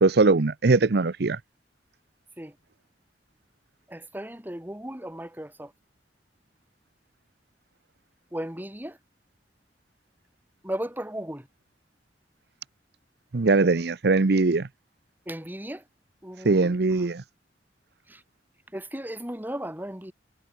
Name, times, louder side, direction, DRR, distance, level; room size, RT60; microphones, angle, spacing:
voice 1, 0.0-1.4 13.3-14.7 16.4-17.2, right 3 dB, 65° right, 0.7 m, -21 dB
voice 2, 3.9-5.7 8.3-9.0 10.6-11.5 15.3-15.8 16.2-16.8 18.1-18.2 18.7-20.1, right 1 dB, 10° right, 3.9 m, -36 dB
head